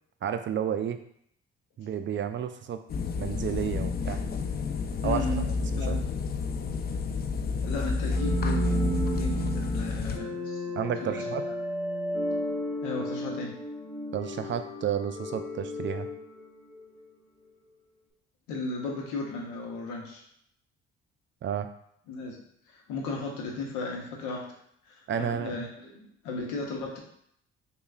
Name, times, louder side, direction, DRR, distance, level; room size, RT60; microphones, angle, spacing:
voice 1, 0.2-1.0 1.8-2.8 3.2-4.2 5.0-6.0 10.8-11.4 14.1-16.1 21.4-21.7 25.1-25.7, right 8 dB, 40° right, 9 dB, 0.4 m, -31 dB
sound 1, 2.9-10.2, left 4 dB, 35° left, 0.4 m, -30 dB
voice 2, 5.0-5.5 5.7-6.0 7.6-11.2 12.8-13.5 18.5-20.2 22.1-22.4 22.7-24.5 24.9-25.9 26.2-27.0, left 3 dB, 90° left, 0 dB, 0.8 m, -35 dB
sound 2, 8.1-17.1, right 1 dB, 10° right, 1.4 m, -34 dB
5.2 x 2.3 x 2.3 m, 0.69 s
supercardioid pair, 65°, 29 cm